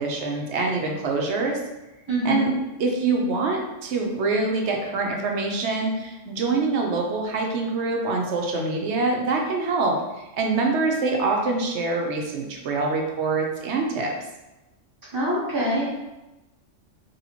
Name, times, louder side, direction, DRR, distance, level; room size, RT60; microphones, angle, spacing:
voice 1, 0.0-1.6 2.2-2.5 2.8-10.0 10.4-14.1, right 3 dB, 65° right, 1 dB, 0.9 m, -25 dB
voice 2, 2.1-2.6 15.1-15.9, equal, 25° right, -8 dB, 0.5 m, -24 dB
4.1 x 3.4 x 2.8 m, 1.0 s
omnidirectional pair, 1.3 m